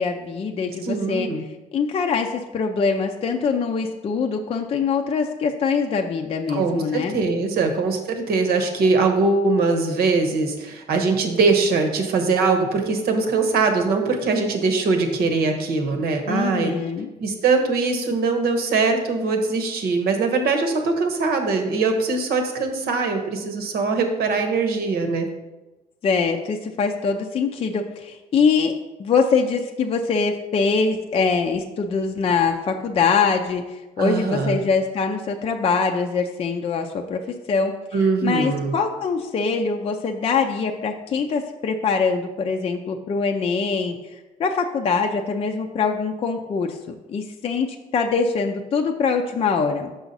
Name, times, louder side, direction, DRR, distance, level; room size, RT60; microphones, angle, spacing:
voice 1, 0.0-1.3 1.7-7.2 16.3-17.1 26.0-28.7 29.0-37.2 37.5-37.7 38.2-44.0 44.4-46.8 47.1-49.9, left 5 dB, 35° left, 4 dB, 0.5 m, -23 dB
voice 2, 0.8-1.4 6.5-16.7 17.2-25.3 34.0-34.6 37.9-38.7, right 4 dB, 65° right, 5 dB, 1.1 m, -22 dB
5.9 x 5.6 x 4.0 m, 1.1 s
cardioid pair, 110°, 17 cm